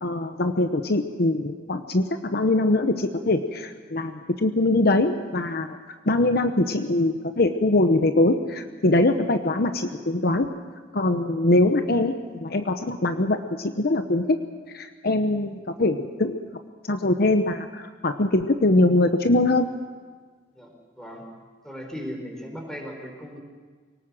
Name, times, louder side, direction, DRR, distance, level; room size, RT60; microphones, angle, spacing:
voice 1, 0.0-5.8 6.1-10.5 10.9-14.4 14.7-16.4 16.9-19.7, left 2 dB, 55° left, 8 dB, 0.9 m, -22 dB
voice 2, 20.5-21.3 21.6-23.4, equal, 5° left, 1 dB, 4.4 m, -37 dB
23.5 x 18.5 x 7.5 m, 1.5 s
head